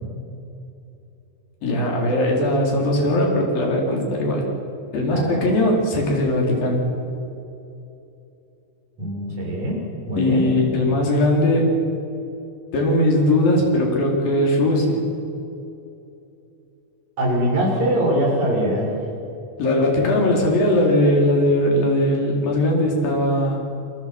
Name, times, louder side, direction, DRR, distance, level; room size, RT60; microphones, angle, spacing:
voice 1, 1.6-4.5 4.9-6.8 10.2-11.8 12.7-15.1 19.6-23.6, left 1 dB, 70° left, 0 dB, 6.0 m, -19 dB
voice 2, 9.0-9.8 10.1-10.5 17.2-18.9, equal, 50° right, -2 dB, 8.0 m, -22 dB
28.0 x 23.0 x 6.2 m, 2.8 s
omnidirectional pair, 4.2 m